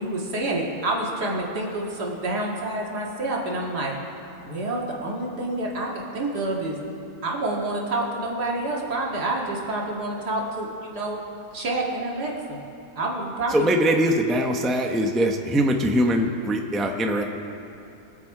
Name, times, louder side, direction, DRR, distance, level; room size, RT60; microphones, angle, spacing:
voice 1, 0.0-3.9 4.4-6.8 7.2-11.2 11.5-12.6 12.9-13.7, right 2 dB, 80° right, -2 dB, 2.5 m, -28 dB
voice 2, 13.5-17.2, equal, ahead, 2 dB, 0.5 m, -22 dB
23.0 x 7.8 x 4.9 m, 2.8 s
omnidirectional pair, 1.7 m